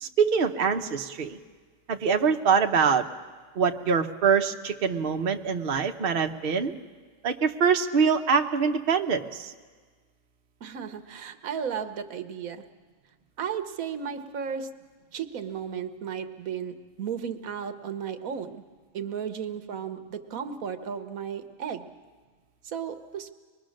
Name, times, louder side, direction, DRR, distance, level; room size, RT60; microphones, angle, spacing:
voice 1, 0.0-1.4 1.9-3.0 3.6-6.7 7.2-9.5, right 6 dB, 45° right, 5 dB, 1.0 m, -24 dB
voice 2, 10.6-12.6 13.4-14.7 15.1-18.6 18.9-21.9 22.6-23.3, right 7 dB, 85° right, 8 dB, 1.4 m, -34 dB
24.5 x 21.0 x 6.4 m, 1.5 s
omnidirectional pair, 1.4 m